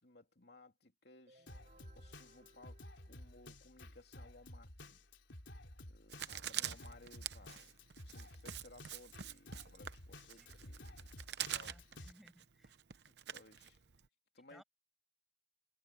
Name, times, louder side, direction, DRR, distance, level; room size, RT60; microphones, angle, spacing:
voice 1, 0.0-5.0 5.8-7.8 8.0-11.1 11.4-11.8 13.0-13.8 14.3-14.6, left 2 dB, 60° left, 3.3 m, -61 dB
sound 1, 1.3-3.9, right 2 dB, 40° right, 4.3 m, -67 dB
Drum kit, 1.5-12.1, left 1 dB, 90° left, 3.7 m, -54 dB
Writing, 6.1-14.1, right 11 dB, 65° right, 0.9 m, -45 dB
voice 2, 10.3-10.6 11.5-12.8 14.4-14.6, equal, ahead, 7.9 m, -64 dB
head